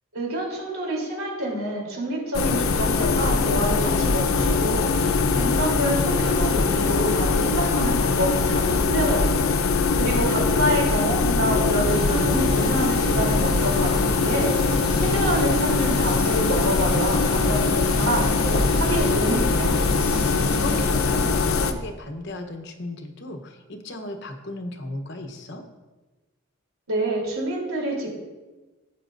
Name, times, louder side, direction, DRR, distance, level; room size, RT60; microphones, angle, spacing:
voice 1, 0.1-9.3 10.0-14.5 15.0-19.8 26.9-28.1, right 1 dB, 90° right, -2 dB, 3.3 m, -27 dB
sound 1, 2.3-21.7, left 4 dB, 85° left, 0.7 m, -22 dB
voice 2, 9.7-10.4 20.2-25.6, left 1 dB, 55° left, 6 dB, 1.0 m, -36 dB
sound 2, 11.8-20.9, equal, 20° right, 1.0 m, -32 dB
13.0 x 8.5 x 2.6 m, 1.2 s
head